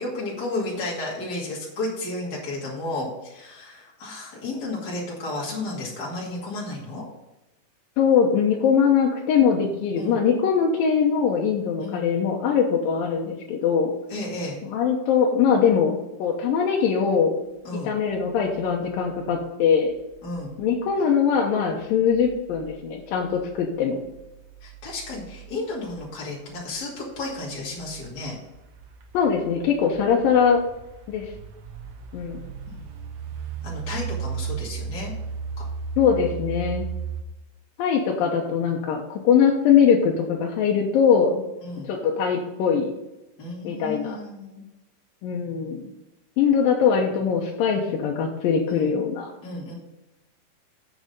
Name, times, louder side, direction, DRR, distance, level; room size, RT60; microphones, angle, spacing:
voice 1, 0.0-7.0 10.0-10.2 11.8-12.0 14.1-14.6 17.6-17.9 20.2-20.5 24.6-28.4 33.6-35.1 35.6-35.7 41.6-41.9 43.4-44.6 48.7-48.9 49.4-49.7, left 2 dB, 30° left, -5 dB, 2.6 m, -32 dB
voice 2, 8.0-13.9 14.6-17.4 17.7-19.9 20.6-24.0 29.1-30.6 31.1-31.3 32.1-32.4 36.0-36.9 37.8-41.4 41.8-42.9 43.6-44.2 45.2-45.9 46.4-49.3, left 7 dB, 90° left, 0 dB, 2.7 m, -21 dB
sound 1, 18.1-37.2, right 6 dB, 70° right, 1.8 m, -37 dB
8.7 x 6.3 x 5.3 m, 0.97 s
omnidirectional pair, 3.9 m